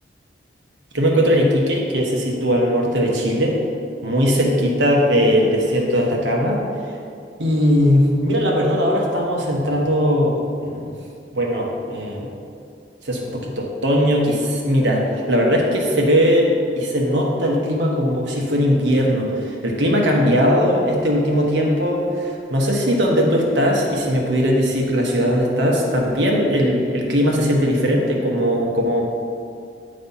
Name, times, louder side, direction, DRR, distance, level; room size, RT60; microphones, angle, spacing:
voice 1, 0.9-3.6 4.0-6.6 7.4-10.9 11.3-12.3 13.0-29.0, equal, 90° right, -1 dB, 1.2 m, -19 dB
9.4 x 3.2 x 5.5 m, 2.5 s
head